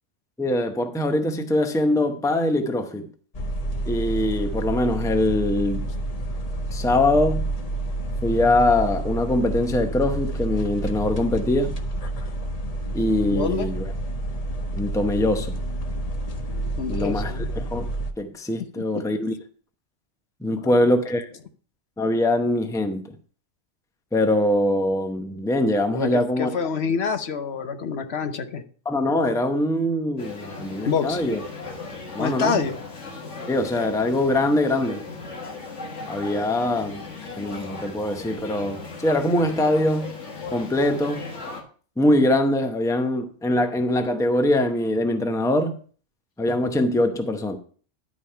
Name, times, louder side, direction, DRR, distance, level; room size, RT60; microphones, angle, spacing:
voice 1, 0.4-3.1 3.9-5.9 6.7-7.4 8.2-11.8 12.9-13.8 14.7-15.6 16.9-17.9 18.2-19.3 20.4-21.3 22.0-23.1 24.1-26.5 28.8-31.4 32.1-32.6 33.5-35.0 36.1-37.0 37.4-40.2 40.5-41.3 42.0-45.8 46.4-47.6, left 1 dB, 5° left, 0.7 m, -23 dB
sound 1, 3.3-18.1, right 1 dB, 35° left, 0.8 m, -29 dB
voice 2, 13.3-13.7 16.8-17.6 20.6-20.8 25.9-28.6 30.9-31.2 32.2-32.8, left 6 dB, 65° left, 1.0 m, -27 dB
sound 2, 30.2-41.6, left 3 dB, 90° left, 1.9 m, -37 dB
11.0 x 5.1 x 5.6 m
omnidirectional pair, 1.2 m